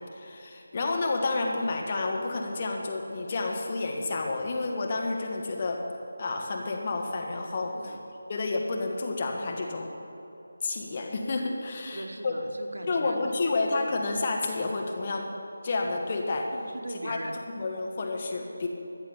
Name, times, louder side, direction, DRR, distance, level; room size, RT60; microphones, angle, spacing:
voice 1, 0.1-5.8 6.2-7.7 8.3-9.9 10.6-12.3 12.9-15.3 15.6-16.5 17.0-17.2 17.5-18.7, left 3 dB, 35° left, 2 dB, 1.3 m, -30 dB
voice 2, 11.8-13.2 13.5-13.6 13.8-13.9 16.5-17.4, right 1 dB, 70° right, 4 dB, 1.4 m, -39 dB
14.0 x 7.4 x 7.0 m, 3.0 s
figure-of-eight pair, 165°, 0 cm